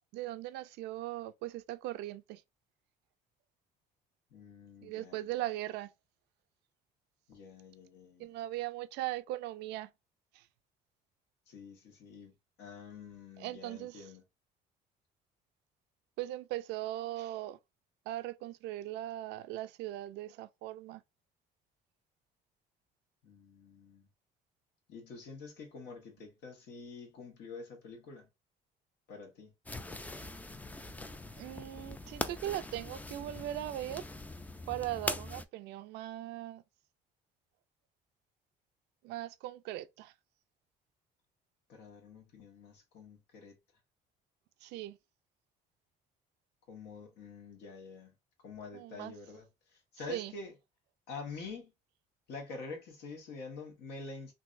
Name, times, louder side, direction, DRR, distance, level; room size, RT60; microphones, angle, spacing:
voice 1, 0.1-2.4 4.8-5.9 8.2-9.9 10.3-10.4 13.4-14.1 16.2-17.6 18.1-21.0 31.4-34.0 34.7-36.6 39.0-40.1 44.6-45.0 48.7-49.1 50.1-50.3, right 14 dB, 85° right, 0.4 m, -39 dB
voice 2, 4.3-5.3 7.3-8.3 11.5-12.3 12.6-14.2 23.2-24.1 24.9-28.3 29.1-29.5 41.7-43.5 46.7-48.1 48.4-49.5 49.9-50.5 51.1-51.7 52.3-54.3, left 4 dB, 80° left, 1.4 m, -47 dB
sound 1, 29.7-35.5, left 2 dB, 10° left, 0.3 m, -42 dB
3.8 x 2.7 x 2.5 m
cardioid pair, 110°, 17 cm